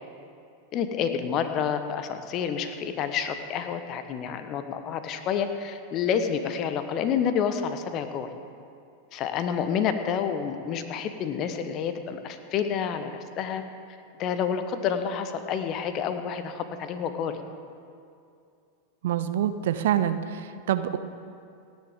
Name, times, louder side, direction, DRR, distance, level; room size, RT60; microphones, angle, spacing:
voice 1, 0.7-8.3 9.1-13.6 14.2-17.4, left 7 dB, 35° left, 9 dB, 1.2 m, -29 dB
voice 2, 19.0-21.0, right 10 dB, 55° right, 11 dB, 0.7 m, -26 dB
29.0 x 10.5 x 3.9 m, 2.5 s
figure-of-eight pair, 90°, 0 cm